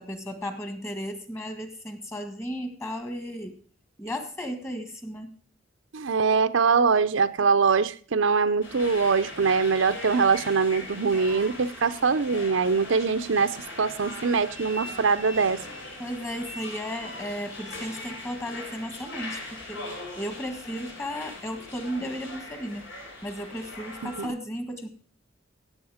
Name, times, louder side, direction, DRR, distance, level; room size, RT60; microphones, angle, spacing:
voice 1, 0.0-3.6 4.0-5.3 16.0-22.8 23.2-24.9, equal, 15° left, 6 dB, 1.7 m, -35 dB
voice 2, 5.9-15.6 24.0-24.3, right 5 dB, 75° right, 10 dB, 0.6 m, -23 dB
sound 1, 8.6-24.3, left 2 dB, 75° left, 5.3 m, -40 dB
16.5 x 8.2 x 5.0 m, 0.44 s
head